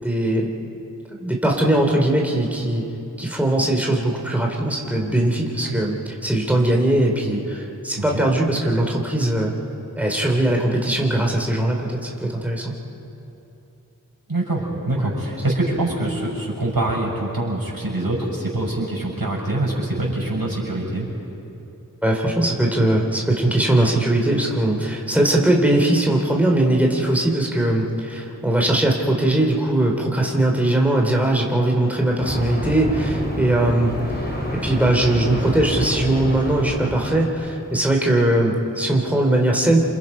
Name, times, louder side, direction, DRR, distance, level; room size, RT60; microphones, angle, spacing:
voice 1, 0.0-0.5 1.2-2.9 3.2-9.5 9.9-12.7 14.9-15.1 22.0-34.0 34.5-39.8, right 1 dB, 5° right, 0 dB, 3.1 m, -20 dB
voice 2, 14.3-21.1, right 2 dB, 80° right, -3 dB, 6.5 m, -24 dB
sound 1, 32.2-37.6, equal, 25° left, 5.3 m, -28 dB
28.0 x 27.5 x 5.4 m, 2.9 s
wide cardioid pair, 45°, 35 cm